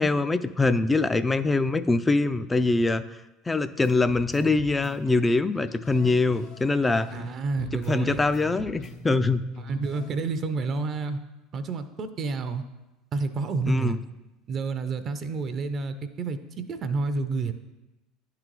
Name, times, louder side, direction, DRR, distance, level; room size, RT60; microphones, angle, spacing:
voice 1, 0.0-3.0 3.5-7.1 7.7-9.4 13.7-14.0, left 3 dB, 15° left, 12 dB, 0.3 m, -23 dB
sound 1, 3.8-7.3 7.6-10.3, left 2 dB, 70° left, 0.9 m, -42 dB
voice 2, 7.1-8.2 9.6-11.2 11.5-12.6 13.1-14.0 14.5-17.5, right 4 dB, 40° right, 10 dB, 0.5 m, -29 dB
10.0 x 3.8 x 3.1 m, 1.0 s
hypercardioid pair, 75°, 0 cm